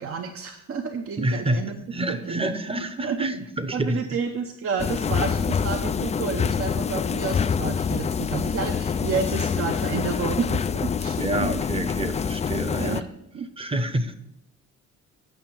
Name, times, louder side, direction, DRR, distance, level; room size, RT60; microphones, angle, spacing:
voice 1, 0.0-1.7 2.1-2.4 3.0-3.2 3.7-11.5 12.8-13.0 13.3-13.5, right 6 dB, 50° right, 5 dB, 0.8 m, -30 dB
voice 2, 1.2-4.0 11.2-13.1 13.6-14.1, right 1 dB, 20° right, 11 dB, 0.9 m, -28 dB
sound 1, 4.8-13.0, left 6 dB, 25° left, 0.3 m, -26 dB
9.2 x 5.8 x 5.9 m, 0.81 s
cardioid pair, 90°, 30 cm